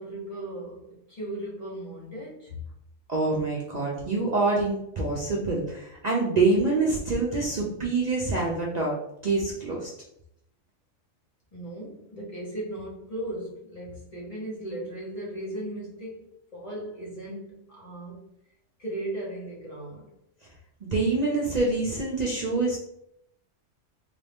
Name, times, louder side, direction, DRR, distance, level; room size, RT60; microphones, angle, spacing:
voice 1, 0.0-2.6 11.5-18.2 18.8-20.1, right 1 dB, 35° left, -5 dB, 1.2 m, -37 dB
voice 2, 3.1-9.0 9.2-9.9 20.8-22.8, right 3 dB, 45° right, -3 dB, 0.7 m, -26 dB
3.9 x 2.6 x 3.4 m, 0.76 s
omnidirectional pair, 1.2 m